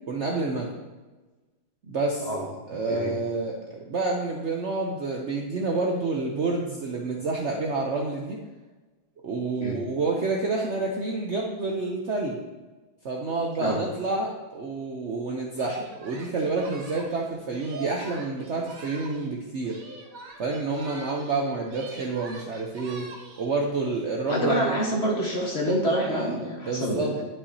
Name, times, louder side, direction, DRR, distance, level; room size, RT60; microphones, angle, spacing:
voice 1, 0.1-0.7 1.9-2.3 2.7-8.4 9.2-12.4 13.0-19.8 20.4-23.1 23.4-24.8 26.0-27.1, right 3 dB, 90° right, -1 dB, 0.6 m, -29 dB
Singing, 15.5-19.3 19.6-21.4 21.6-23.5, right 3 dB, 55° right, 1.0 m, -43 dB
voice 2, 24.3-27.2, equal, 35° left, -2 dB, 1.3 m, -27 dB
11.0 x 5.6 x 2.8 m, 1.2 s
omnidirectional pair, 2.3 m